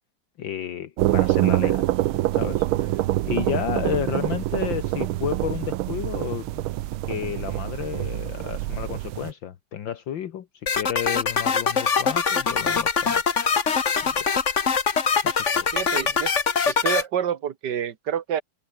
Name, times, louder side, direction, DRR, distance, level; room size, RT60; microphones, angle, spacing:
voice 1, 0.4-1.9 2.3-6.7 7.1-10.5 10.7-13.2 14.0-14.3 15.2-15.7, left 10 dB, 70° left, 1.9 m, -32 dB
sound 1, 1.0-9.3, right 15 dB, 85° right, 1.6 m, -25 dB
sound 2, 10.7-17.0, left 6 dB, 40° left, 1.7 m, -23 dB
voice 2, 15.7-16.3 16.7-18.4, right 9 dB, 60° right, 1.7 m, -28 dB
omnidirectional pair, 2.3 m